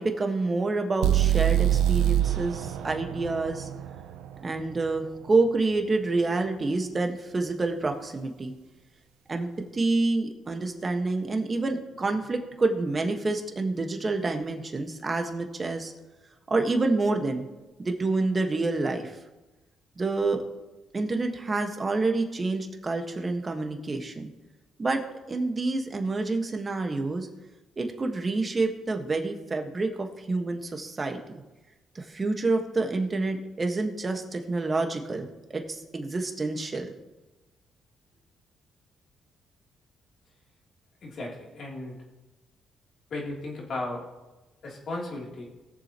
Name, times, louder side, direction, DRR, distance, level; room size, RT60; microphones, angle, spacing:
voice 1, 0.0-3.7 4.4-8.5 9.3-15.9 16.5-17.4 17.8-19.1 20.0-20.4 20.9-24.3 24.8-27.3 27.8-31.4 31.9-36.9, right 3 dB, 30° right, 4 dB, 1.5 m, -28 dB
sound 1, 1.0-5.0, right 11 dB, 85° right, 0.6 m, -25 dB
voice 2, 41.0-42.0 43.1-44.0 44.6-45.4, left 2 dB, 60° left, -3 dB, 3.2 m, -35 dB
20.5 x 7.2 x 3.0 m, 1.1 s
cardioid pair, 90°, 0 cm